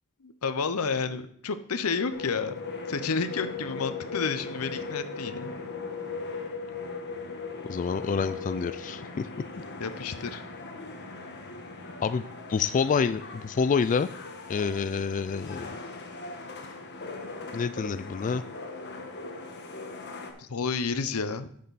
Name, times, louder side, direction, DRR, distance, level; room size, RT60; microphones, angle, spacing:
voice 1, 0.2-2.6 2.9-5.5 9.8-10.4 20.4-21.5, left 5 dB, 85° left, 11 dB, 0.7 m, -30 dB
sound 1, 2.1-20.3, left 4 dB, 55° left, 1.3 m, -39 dB
voice 2, 7.7-9.3 12.0-12.2 12.5-14.1 14.5-15.8 17.5-18.4, left 5 dB, 35° left, 12 dB, 0.3 m, -27 dB
10.0 x 6.6 x 4.1 m, 0.63 s
head